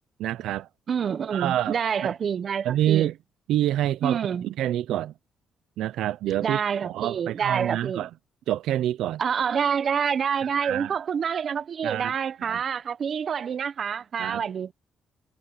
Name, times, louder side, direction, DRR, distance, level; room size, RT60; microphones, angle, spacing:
voice 1, 0.2-0.7 1.3-2.1 2.6-3.1 3.5-5.1 5.8-8.1 8.5-9.2 10.4-10.9 11.8-12.1 12.4-12.6 14.2-14.4, right 12 dB, 85° right, 0.7 m, -27 dB
voice 2, 0.9-3.1 4.0-4.5 6.4-8.1 9.2-14.7, right 7 dB, 55° right, 1.2 m, -27 dB
cardioid pair, 90°, 0 cm